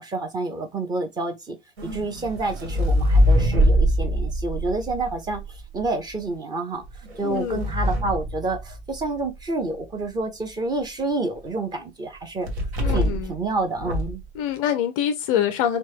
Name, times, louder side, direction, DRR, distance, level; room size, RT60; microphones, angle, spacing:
voice 1, 0.0-1.6 1.8-5.4 5.7-12.5 12.9-14.2, right 3 dB, 10° right, 0.7 m, -28 dB
sound 1, 1.8-5.9 6.8-9.2 12.5-13.4 13.7-14.2, equal, 60° right, 1.6 m, -23 dB
voice 2, 7.2-7.6 12.8-13.3 14.3-15.8, left 10 dB, 30° left, 0.4 m, -25 dB
4.4 x 2.3 x 2.9 m
figure-of-eight pair, 95°, 35 cm